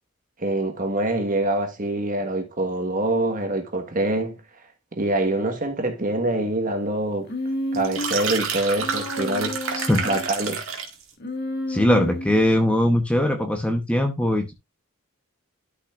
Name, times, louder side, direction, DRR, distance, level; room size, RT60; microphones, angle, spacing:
voice 1, 0.4-4.4 4.9-7.3 7.7-9.6 10.0-10.6, right 2 dB, 40° right, 1.5 m, -25 dB
Human voice, 7.3-8.2 8.8-10.3 11.2-12.5, left 1 dB, 50° left, 1.9 m, -31 dB
sound 1, 7.7-11.0, right 6 dB, 65° right, 2.0 m, -29 dB
voice 2, 11.7-14.5, left 1 dB, 5° left, 1.0 m, -21 dB
12.0 x 5.6 x 2.5 m
head